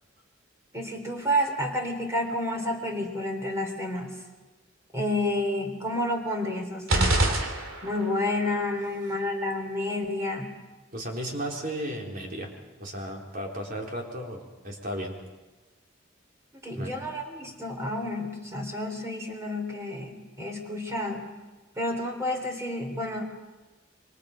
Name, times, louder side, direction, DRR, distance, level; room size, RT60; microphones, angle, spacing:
voice 1, 0.7-4.2 4.9-7.2 7.8-10.6 16.6-21.4 21.8-23.2, left 1 dB, 15° right, 3 dB, 3.5 m, -30 dB
sound 1, 6.9-8.2, right 2 dB, 85° right, 3.0 m, -25 dB
voice 2, 10.9-12.5 12.8-15.2 16.7-16.9, equal, 45° right, 0 dB, 4.0 m, -34 dB
27.5 x 24.5 x 5.2 m, 1.2 s
head